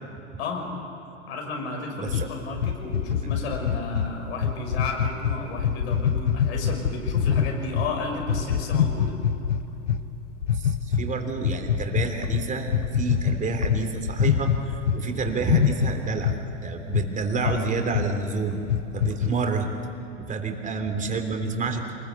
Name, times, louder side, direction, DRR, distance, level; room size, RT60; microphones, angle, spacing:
voice 1, 1.3-9.2 17.4-17.6, left 3 dB, 65° left, 1 dB, 6.4 m, -33 dB
sound 1, 2.1-7.9 8.2-10.0 10.4-11.0 11.4-15.0 15.3-16.4 16.9-17.1 17.4-17.6 17.9-18.1 18.5-19.3, left 8 dB, 80° left, 1.1 m, -24 dB
voice 2, 10.5-18.6 18.9-19.7 20.2-21.9, right 4 dB, 20° right, 4 dB, 3.3 m, -29 dB
27.5 x 21.0 x 8.4 m, 2.9 s
figure-of-eight pair, 90°, 36 cm